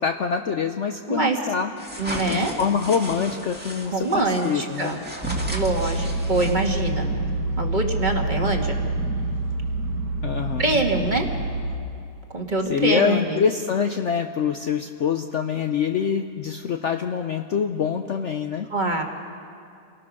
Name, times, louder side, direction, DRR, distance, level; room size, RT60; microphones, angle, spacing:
voice 1, 0.0-2.0 2.3-5.0 10.2-10.6 12.7-18.7, left 7 dB, 60° left, 5 dB, 0.9 m, -25 dB
voice 2, 1.1-1.4 2.0-2.5 3.8-5.0 5.5-7.1 7.6-8.8 10.6-11.3 12.3-13.4 18.7-19.0, right 2 dB, 30° right, 2 dB, 1.7 m, -24 dB
sound 1, 1.8-6.9, right 1 dB, 5° right, 1.8 m, -36 dB
sound 2, 5.2-11.8, right 2 dB, 85° right, 2.6 m, -27 dB
28.0 x 18.5 x 6.0 m, 2.5 s
omnidirectional pair, 1.8 m